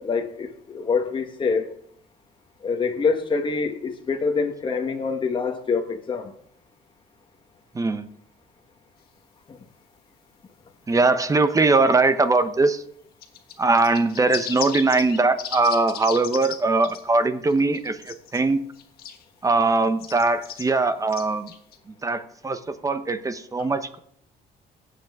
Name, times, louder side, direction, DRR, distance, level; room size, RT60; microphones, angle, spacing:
voice 1, 0.0-1.7 2.6-6.3 9.5-9.6, left 4 dB, 30° left, 1.2 m, -25 dB
voice 2, 7.7-8.1 10.9-12.8 13.6-18.6 19.4-21.5 22.0-24.0, right 3 dB, 20° right, 0.9 m, -21 dB
sound 1, 13.2-16.6 16.8-17.0 17.5-18.4 18.7-19.2 20.0-20.7 21.1-21.8, left 9 dB, 65° left, 1.4 m, -36 dB
15.5 x 8.0 x 3.6 m
cardioid pair, 110°, 17 cm